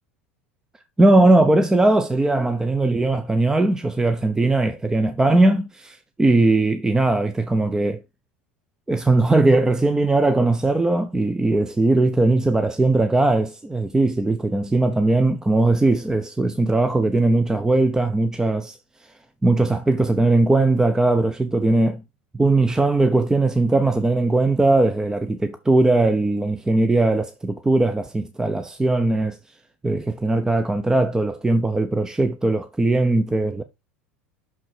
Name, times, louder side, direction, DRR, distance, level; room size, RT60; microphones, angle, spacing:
voice 1, 1.0-8.0 8.9-18.8 19.4-22.0 22.3-29.4 29.8-33.6, right 2 dB, 10° right, 0.8 m, -19 dB
6.3 x 6.1 x 4.4 m
figure-of-eight pair, 75°, 7 cm